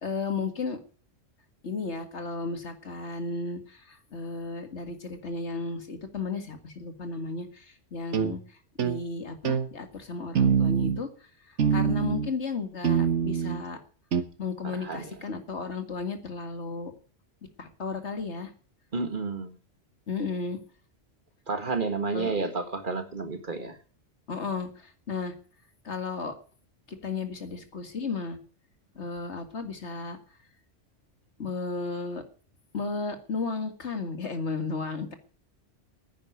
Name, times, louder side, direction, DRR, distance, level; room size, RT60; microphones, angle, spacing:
voice 1, 0.0-0.8 1.6-8.4 8.8-13.8 14.4-16.9 17.6-18.5 20.1-20.6 22.1-22.4 24.3-25.3 25.8-26.3 26.9-28.4 29.0-30.2 31.4-32.2 32.7-35.2, left 4 dB, 65° left, 8 dB, 2.2 m, -34 dB
sound 1, 8.1-8.3 8.8-9.0 9.4-9.7 10.3-11.0 11.6-12.3 12.8-13.6 14.1-14.2, right 7 dB, 70° right, 1.4 m, -24 dB
voice 2, 14.7-15.1 18.9-19.5 21.5-23.8, right 4 dB, 45° right, 9 dB, 1.6 m, -31 dB
10.5 x 9.5 x 9.4 m, 0.41 s
omnidirectional pair, 1.2 m